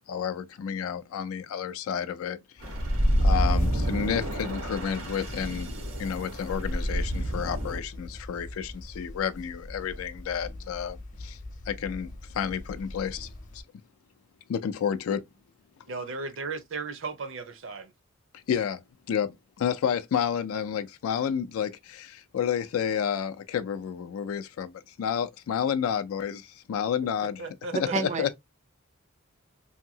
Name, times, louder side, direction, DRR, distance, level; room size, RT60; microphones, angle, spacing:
voice 1, 0.0-2.6 3.2-5.7 6.0-11.4 11.7-13.6 14.5-15.2 18.3-18.8 19.1-27.5 27.7-28.3, left 8 dB, 85° left, 0.3 m, -30 dB
sound 1, 2.6-13.6, left 1 dB, 40° left, 0.6 m, -43 dB
sound 2, 2.6-7.8, equal, 90° right, 1.1 m, -28 dB
voice 2, 15.9-17.9 27.4-27.9, right 4 dB, 65° right, 0.7 m, -36 dB
voice 3, 27.7-28.4, right 4 dB, 35° right, 0.4 m, -29 dB
2.8 x 2.6 x 2.7 m
head